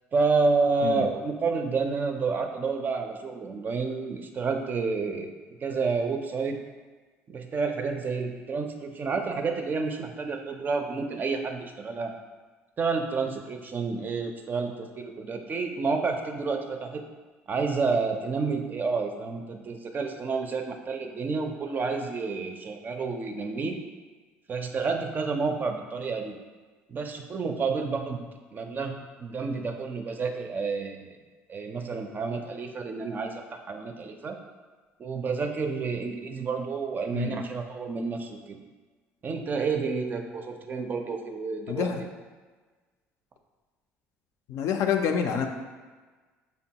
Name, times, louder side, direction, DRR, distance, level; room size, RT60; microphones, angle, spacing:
voice 1, 0.1-5.3 5.6-6.6 7.3-12.1 12.8-17.0 17.5-23.8 24.5-26.3 26.9-28.2 28.5-28.9 29.2-31.1 31.5-33.3 33.7-34.4 35.0-38.6 39.2-41.9, right 4 dB, 35° right, 5 dB, 0.4 m, -29 dB
voice 2, 41.7-42.0 44.5-45.5, left 7 dB, 65° left, 5 dB, 0.4 m, -27 dB
5.2 x 2.2 x 2.8 m, 1.4 s
supercardioid pair, 90°, 5 cm